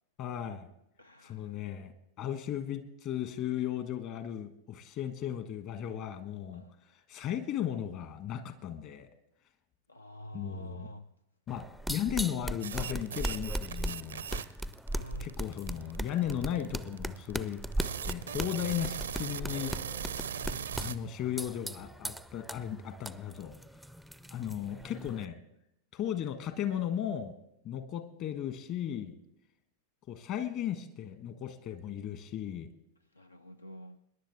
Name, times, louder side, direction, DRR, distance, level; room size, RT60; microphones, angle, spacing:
voice 1, 0.2-0.7 1.2-1.9 2.2-6.6 7.1-9.1 10.3-10.9 11.5-14.3 15.2-19.7 20.8-23.5 24.3-25.4 25.9-27.3 27.6-29.2 30.1-32.7, left 10 dB, 40° left, 9 dB, 1.4 m, -36 dB
voice 2, 1.0-1.6 6.5-6.7 9.9-11.1 14.9-15.3 24.3-24.8 33.1-34.0, equal, 80° left, 12 dB, 0.4 m, -48 dB
sound 1, 11.5-25.3, right 1 dB, ahead, 0.4 m, -39 dB
sound 2, 12.6-21.0, right 8 dB, 70° right, 0.5 m, -39 dB
25.5 x 10.5 x 3.5 m, 0.83 s
figure-of-eight pair, 90°, 0 cm